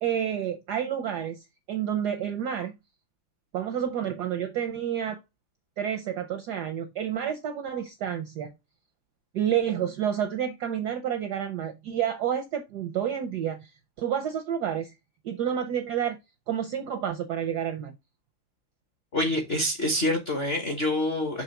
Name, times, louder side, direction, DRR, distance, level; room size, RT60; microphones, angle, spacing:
voice 1, 0.0-2.7 3.5-5.2 5.8-8.5 9.3-13.7 14.0-14.9 15.2-16.2 16.5-17.9, right 9 dB, 75° right, 0.9 m, -29 dB
voice 2, 19.1-21.4, left 1 dB, 50° left, 0.8 m, -26 dB
6.1 x 3.2 x 5.7 m
omnidirectional pair, 2.4 m